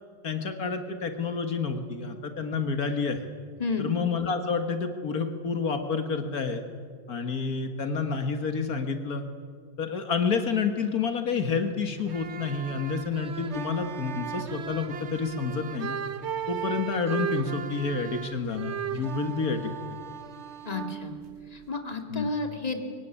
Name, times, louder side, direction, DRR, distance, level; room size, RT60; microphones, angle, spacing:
voice 1, 0.2-3.3 3.8-6.6 7.1-9.2 9.8-16.0 16.5-19.7 22.1-22.3, left 5 dB, 65° left, 7 dB, 1.9 m, -29 dB
voice 2, 3.6-3.9 20.6-21.1 21.5-22.8, left 3 dB, 25° left, 5 dB, 2.4 m, -31 dB
sound 1, 12.0-21.8, right 8 dB, 50° right, 1.2 m, -36 dB
24.0 x 23.0 x 10.0 m, 2.1 s
omnidirectional pair, 1.7 m